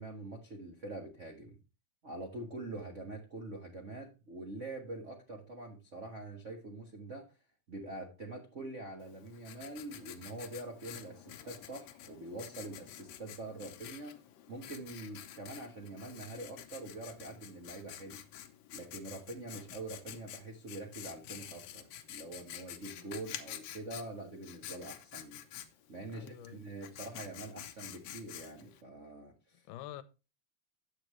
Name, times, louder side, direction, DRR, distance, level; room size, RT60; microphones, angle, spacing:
voice 1, 0.0-1.6 2.0-7.4 7.7-14.2 14.5-18.2 18.7-25.4 25.9-29.6, right 2 dB, 75° right, 0.6 m, -45 dB
Writing, 9.0-28.8, left 11 dB, 70° left, 1.9 m, -49 dB
voice 2, 26.0-26.6 29.7-30.0, left 13 dB, 90° left, 2.2 m, -47 dB
10.0 x 7.8 x 3.1 m
omnidirectional pair, 3.7 m